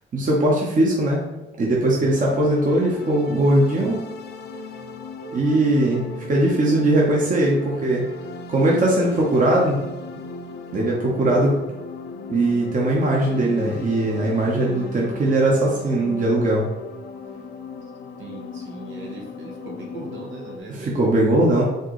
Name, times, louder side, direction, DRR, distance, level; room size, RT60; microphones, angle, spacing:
voice 1, 0.1-1.2 1.6-4.0 5.3-8.1 8.5-9.8 10.7-11.5 12.3-16.6 20.7-21.6, right 1 dB, 40° right, -3 dB, 1.0 m, -20 dB
sound 1, 2.0-20.6, left 4 dB, 55° left, 0.5 m, -37 dB
voice 2, 18.2-21.0, right 2 dB, 80° right, 0 dB, 1.1 m, -38 dB
4.5 x 3.7 x 3.1 m, 1.0 s
cardioid pair, 90°, 20 cm